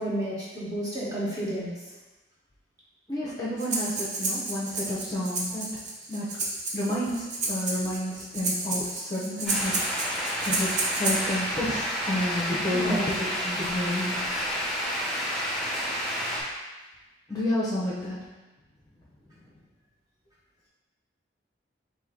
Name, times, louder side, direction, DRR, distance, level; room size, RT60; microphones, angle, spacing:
voice 1, 0.0-1.7 12.7-13.0, right 1 dB, 20° right, -8 dB, 1.2 m, -31 dB
voice 2, 3.1-5.7 6.1-6.3 6.7-9.8 10.4-14.3 17.3-18.2, left 1 dB, 20° left, -7 dB, 0.6 m, -30 dB
Breathing, 3.6-11.4, right 2 dB, 40° right, 0.6 m, -31 dB
sound 1, 9.5-16.4, equal, ahead, 1.3 m, -30 dB
4.8 x 2.6 x 3.8 m, 1.2 s
head